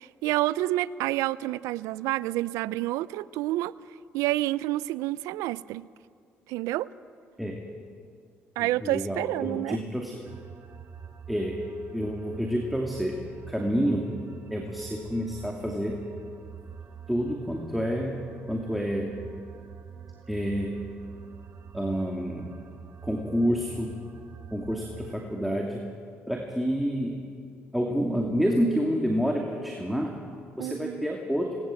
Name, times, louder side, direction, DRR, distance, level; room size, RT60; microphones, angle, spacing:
voice 1, 0.0-3.7 4.1-5.9 6.5-6.9 8.6-9.8 30.6-31.1, right 16 dB, 85° right, 19 dB, 0.4 m, -28 dB
voice 2, 8.6-10.2 11.3-11.6 11.9-13.2 13.5-14.1 14.5-16.1 17.1-19.2 20.3-20.9 21.7-22.5 23.0-24.0 24.5-25.8 26.3-27.2 27.7-30.2 30.6-31.6, equal, ahead, 0 dB, 2.6 m, -28 dB
sound 1, 10.2-25.2, right 7 dB, 55° right, 1.5 m, -45 dB
19.0 x 18.5 x 7.8 m, 2.2 s
supercardioid pair, 65°, 5 cm